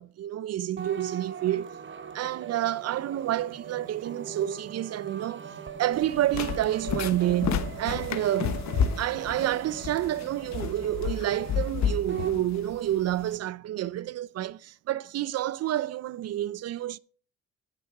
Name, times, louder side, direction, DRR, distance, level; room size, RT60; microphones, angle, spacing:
voice 1, 0.0-1.7 2.1-5.4 5.8-8.6 9.0-17.0, right 13 dB, 55° right, 0.4 m, -29 dB
sound 1, 0.8-12.4, right 7 dB, 40° right, 1.0 m, -41 dB
sound 2, 5.9-13.4, left 7 dB, 65° left, 1.1 m, -31 dB
Wind instrument woodwind instrument, 9.0-13.0, right 4 dB, 90° right, 2.4 m, -55 dB
13.0 x 7.4 x 4.7 m
cardioid pair, 90°, 30 cm